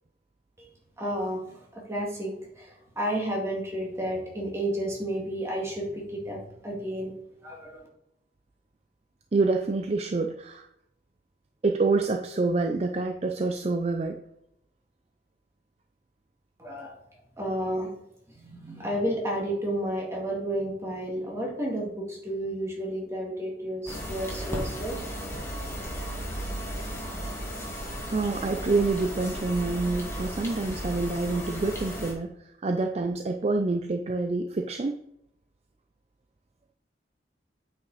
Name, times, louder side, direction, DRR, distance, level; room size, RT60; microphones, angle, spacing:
voice 1, 1.0-7.1 7.4-7.9 16.6-17.0 17.4-17.9 18.4-25.0, right 1 dB, 15° right, -2 dB, 2.2 m, -31 dB
voice 2, 9.3-10.7 11.6-14.2 28.1-34.9, right 3 dB, 35° right, 4 dB, 0.5 m, -27 dB
sound 1, 23.9-32.1, equal, 15° left, 1.8 m, -35 dB
8.8 x 5.3 x 4.0 m, 0.77 s
head